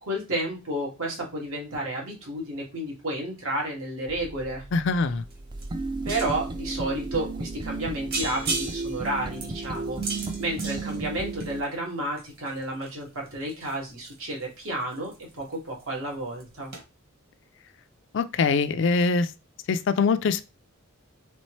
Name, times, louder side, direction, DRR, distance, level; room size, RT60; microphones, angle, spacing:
voice 1, 0.0-4.6 6.0-10.0 10.4-16.7, right 1 dB, 80° right, 2.0 m, -31 dB
sound 1, 4.1-11.6, right 3 dB, 20° right, 0.4 m, -34 dB
voice 2, 4.7-5.2 18.1-19.3 19.7-20.4, left 4 dB, 60° left, 0.4 m, -23 dB
sound 2, 5.3-5.4 5.6-6.5 7.1-7.2 7.6-7.8 8.1-11.6 12.1-15.5 15.8-16.1 16.4-16.5 16.7-16.8, right 3 dB, 50° right, 1.5 m, -35 dB
4.3 x 3.6 x 3.1 m
head